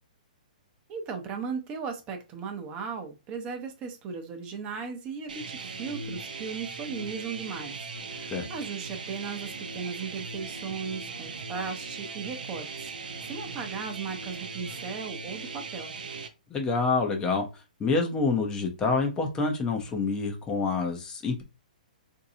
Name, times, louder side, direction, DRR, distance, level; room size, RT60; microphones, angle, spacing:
voice 1, 0.9-7.7 8.1-12.9 13.3-15.9, right 5 dB, 25° right, 5 dB, 0.7 m, -37 dB
sound 1, 5.3-16.3, right 4 dB, 75° right, 0.7 m, -39 dB
voice 2, 16.5-17.5 17.8-21.4, left 4 dB, 15° left, 2 dB, 0.7 m, -27 dB
3.8 x 2.7 x 2.7 m, 0.28 s
hypercardioid pair, 145°, 5 cm